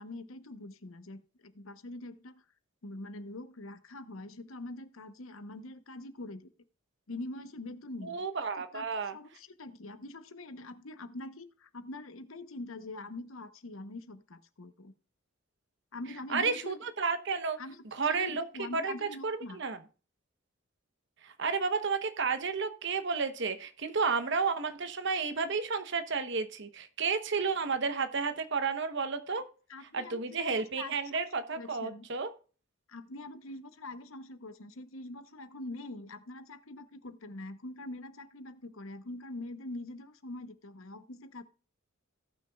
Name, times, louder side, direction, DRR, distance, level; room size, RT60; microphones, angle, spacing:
voice 1, 0.0-2.4 2.8-6.5 7.1-8.2 8.6-14.9 15.9-16.7 17.6-17.8 18.1-19.6 29.7-31.2 31.5-32.1 32.9-41.4, left 2 dB, 85° left, 10 dB, 1.0 m, -44 dB
voice 2, 8.0-9.2 16.3-17.6 17.9-18.4 18.7-19.8 21.2-29.4 29.9-32.3, right 5 dB, 60° right, 9 dB, 1.0 m, -32 dB
17.5 x 6.2 x 2.4 m, 0.38 s
head